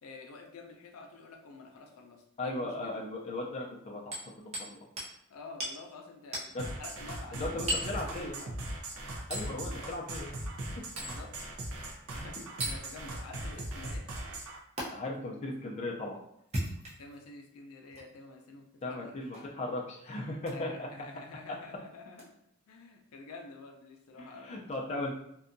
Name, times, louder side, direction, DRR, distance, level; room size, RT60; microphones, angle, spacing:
voice 1, 0.0-3.0 5.3-8.6 9.7-10.0 11.0-11.3 11.7-12.4 12.6-14.1 17.0-19.3 20.5-22.3 22.7-24.6 25.0-25.1, left 3 dB, 85° left, 2 dB, 0.5 m, -49 dB
voice 2, 2.4-4.9 6.5-6.6 7.3-8.3 9.3-10.5 14.9-16.2 18.8-20.9 24.2-25.1, left 2 dB, 30° left, -2 dB, 0.4 m, -37 dB
Hammer, 4.1-4.7 5.0-5.1 5.6-5.8 6.3-6.5 7.7-7.9 9.3-9.5 11.0-11.2 12.6-12.8 14.8-14.9 16.4-17.2 17.9-18.1 19.3-19.5 20.4-20.6 22.1-22.2, right 1 dB, 30° right, 0.6 m, -35 dB
sound 1, 6.6-14.6, right 1 dB, 80° right, 0.5 m, -39 dB
2.6 x 2.2 x 2.5 m, 0.75 s
head